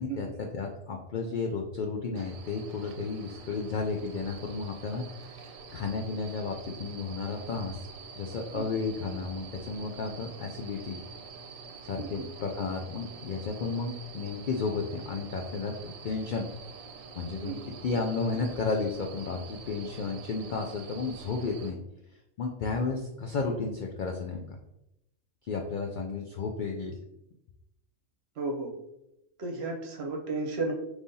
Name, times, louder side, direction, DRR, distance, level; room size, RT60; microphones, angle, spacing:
voice 1, 0.0-7.9 8.2-11.1 11.8-16.5 17.2-21.8 22.4-24.6 25.4-26.9, left 4 dB, 85° left, 2 dB, 0.4 m, -33 dB
sound 1, 2.2-21.7, right 5 dB, 90° right, 1.0 m, -46 dB
voice 2, 28.4-28.7 29.4-30.7, right 3 dB, 60° right, 1 dB, 0.9 m, -33 dB
5.3 x 3.2 x 2.6 m, 0.86 s
omnidirectional pair, 1.4 m